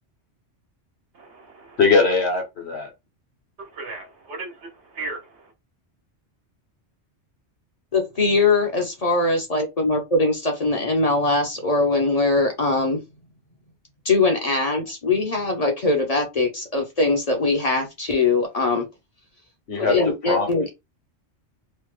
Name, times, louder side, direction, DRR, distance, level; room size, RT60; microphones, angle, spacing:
voice 1, 1.1-1.7 3.6-5.5, right 3 dB, 75° right, 1.3 m, -36 dB
voice 2, 1.8-2.9 19.7-20.0 20.2-20.5, left 4 dB, 70° left, 1.3 m, -20 dB
voice 3, 7.9-13.0 14.0-18.9 19.8-20.7, left 3 dB, 40° left, 0.7 m, -21 dB
3.1 x 2.2 x 3.2 m
omnidirectional pair, 1.2 m